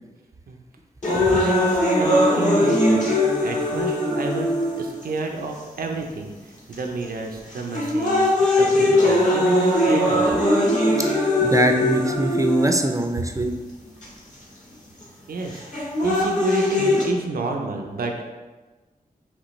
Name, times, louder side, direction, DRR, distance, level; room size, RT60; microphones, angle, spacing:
sound 1, 1.0-5.0 5.8-5.9 6.7-7.0 7.5-13.0 14.0-14.1 15.5-17.0, left 1 dB, 55° left, 1.4 m, -20 dB
voice 1, 1.1-3.1 3.4-10.4 15.3-18.3, right 3 dB, 75° right, 2 dB, 0.5 m, -29 dB
voice 2, 11.4-13.5, right 1 dB, 20° right, 4 dB, 0.5 m, -22 dB
5.1 x 3.2 x 3.1 m, 1.2 s
cardioid pair, 55°, 15 cm